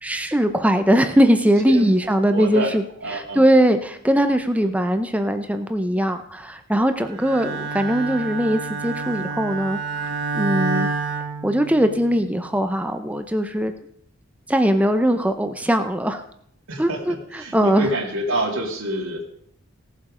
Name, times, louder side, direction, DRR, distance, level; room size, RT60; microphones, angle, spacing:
voice 1, 0.0-2.8 3.1-9.8 10.3-10.9 11.4-13.7 14.5-16.2 16.8-17.9, equal, 5° right, 8 dB, 0.7 m, -20 dB
voice 2, 2.3-2.7 3.0-3.4 16.7-17.0 17.4-19.2, right 1 dB, 85° right, -1 dB, 2.5 m, -26 dB
Bowed string instrument, 7.2-12.1, right 4 dB, 55° right, 1.8 m, -28 dB
17.5 x 7.3 x 5.1 m, 0.71 s
head